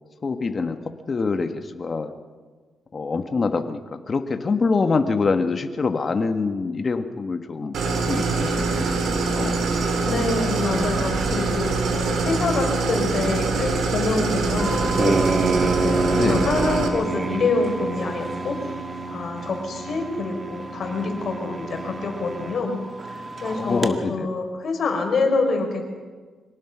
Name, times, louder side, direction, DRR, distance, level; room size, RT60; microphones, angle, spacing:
voice 1, 0.2-0.8 1.1-2.1 2.9-9.6 16.1-16.5 23.6-24.3, left 4 dB, 35° left, 7 dB, 1.5 m, -25 dB
Idling, 7.7-16.9, right 3 dB, 75° right, 3.2 m, -24 dB
voice 2, 10.0-15.2 15.8-18.6 19.1-22.8 23.1-25.8, left 3 dB, 55° left, 3 dB, 4.8 m, -26 dB
sound 1, 14.6-23.9, right 3 dB, 40° right, 1.7 m, -28 dB
24.5 x 18.5 x 6.1 m, 1.4 s
cardioid pair, 95°, 0 cm